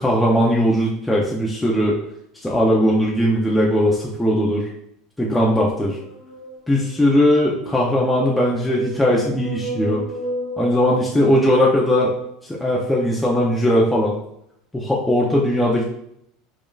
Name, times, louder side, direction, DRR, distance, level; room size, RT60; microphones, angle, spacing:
voice 1, 0.0-2.0 2.4-4.7 5.2-6.0 6.7-10.0 10.6-12.1 12.5-14.1 14.7-15.8, equal, 5° left, -4 dB, 0.5 m, -19 dB
sound 1, 6.0-7.2 8.0-11.9, right 1 dB, 15° right, 1.1 m, -33 dB
5.1 x 3.6 x 2.3 m, 0.74 s
cardioid pair, 175°, 0 cm